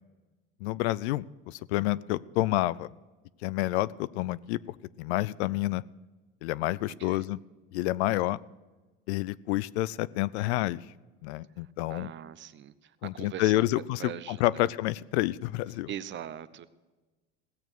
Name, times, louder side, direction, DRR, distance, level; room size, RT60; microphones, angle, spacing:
voice 1, 0.6-2.9 3.4-5.8 6.4-7.4 7.7-8.4 9.1-10.8 11.2-12.1 13.0-15.9, left 17 dB, 85° left, 19 dB, 0.5 m, -29 dB
voice 2, 6.9-7.3 8.1-8.4 11.6-14.7 15.9-16.7, right 10 dB, 35° right, 14 dB, 0.7 m, -42 dB
17.5 x 7.0 x 6.1 m, 1.2 s
supercardioid pair, 110°, 32 cm